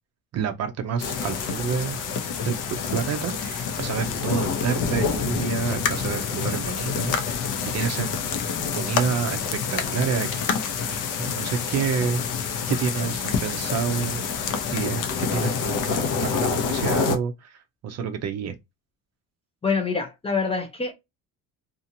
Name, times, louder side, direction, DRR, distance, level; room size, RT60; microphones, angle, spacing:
voice 1, 0.3-2.0 2.4-8.2 8.7-10.5 11.2-12.2 12.7-14.2 14.7-18.6, right 6 dB, 45° right, 0.6 m, -28 dB
sound 1, 1.0-17.2, left 6 dB, 65° left, 0.7 m, -27 dB
voice 2, 19.6-20.9, left 4 dB, 15° left, 0.6 m, -25 dB
2.7 x 2.5 x 2.6 m
cardioid pair, 145°, 35 cm